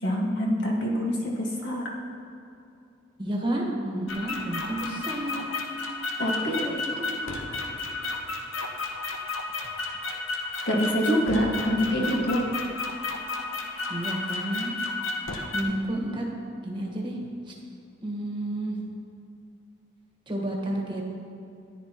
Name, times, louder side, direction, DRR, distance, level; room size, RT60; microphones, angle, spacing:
voice 1, 0.0-1.8 6.2-6.8 10.7-12.4, equal, 60° left, -2 dB, 1.8 m, -25 dB
voice 2, 3.2-5.6 6.7-7.4 11.8-12.1 13.9-14.7 15.5-16.3 16.6-17.2 17.5-17.6 18.0-18.8 20.3-21.1, right 1 dB, 25° right, -1 dB, 1.4 m, -31 dB
sound 1, 4.1-15.6, left 3 dB, 85° left, 1.0 m, -32 dB
14.0 x 10.5 x 3.0 m, 2.6 s
head